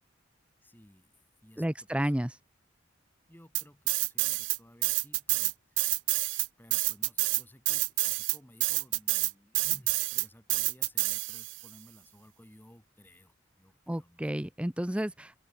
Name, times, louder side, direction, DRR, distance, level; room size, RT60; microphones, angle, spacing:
voice 1, 0.6-1.2 1.4-2.1 3.3-5.9 6.6-14.3, equal, 10° left, 5.7 m, -57 dB
voice 2, 1.6-2.3 13.9-15.4, right 1 dB, 5° right, 0.6 m, -31 dB
sound 1, 3.5-4.6 4.8-11.6, right 22 dB, 65° right, 0.4 m, -28 dB
open air
head